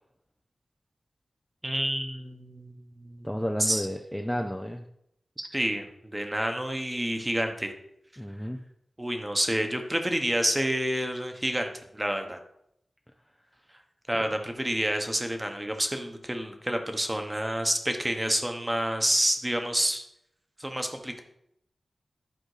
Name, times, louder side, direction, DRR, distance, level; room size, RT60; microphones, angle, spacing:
voice 1, 1.6-3.9 5.4-7.7 9.0-12.4 14.1-20.0 20.6-21.2, right 1 dB, 10° right, 5 dB, 1.1 m, -29 dB
voice 2, 3.2-4.8 8.2-8.6, equal, 5° left, 3 dB, 0.6 m, -31 dB
10.5 x 5.2 x 4.9 m, 0.76 s
wide cardioid pair, 120°, 0 cm